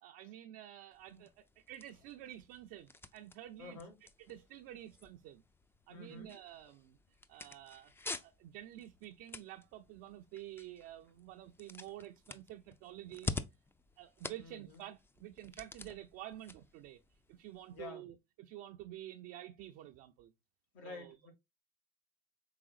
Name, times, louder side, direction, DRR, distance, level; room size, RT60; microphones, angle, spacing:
voice 1, 0.0-3.8 4.3-5.4 5.9-7.0 7.3-7.9 8.2-13.4 14.0-17.0 17.3-20.3 20.8-21.2, right 13 dB, 65° right, 0.5 m, -50 dB
sound 1, 0.9-17.9, left 3 dB, 10° left, 0.4 m, -49 dB
voice 2, 3.6-3.9 5.9-6.3 14.3-14.8 17.7-18.1 20.7-21.3, left 3 dB, 75° left, 1.7 m, -49 dB
4.8 x 3.5 x 2.3 m
supercardioid pair, 85°, 21 cm